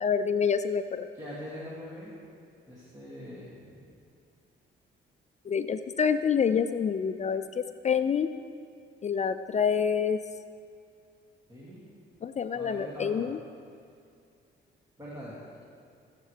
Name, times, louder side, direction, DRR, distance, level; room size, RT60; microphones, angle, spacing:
voice 1, 0.0-1.1 5.5-8.3 9.0-10.2 12.2-13.4, left 7 dB, 35° left, 10 dB, 0.4 m, -27 dB
voice 2, 1.1-2.1 2.7-3.9 11.5-11.8 12.5-13.3 15.0-15.6, equal, 15° right, -7 dB, 2.5 m, -42 dB
19.0 x 7.4 x 3.4 m, 2.3 s
cardioid pair, 90°, 20 cm